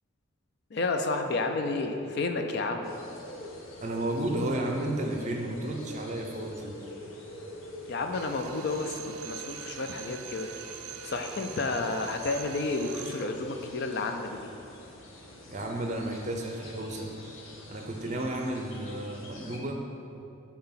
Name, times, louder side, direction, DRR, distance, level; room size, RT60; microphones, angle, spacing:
voice 1, 0.7-2.9 7.9-10.5 11.0-14.5, left 3 dB, 50° left, 5 dB, 0.4 m, -31 dB
sound 1, 2.8-19.6, left 1 dB, 65° left, 0.9 m, -47 dB
voice 2, 3.8-6.8 15.5-17.1 17.7-19.8, right 1 dB, 35° right, 2 dB, 0.6 m, -32 dB
Drill, 8.1-13.4, right 10 dB, 80° right, 0.3 m, -43 dB
5.7 x 4.3 x 5.7 m, 2.8 s
head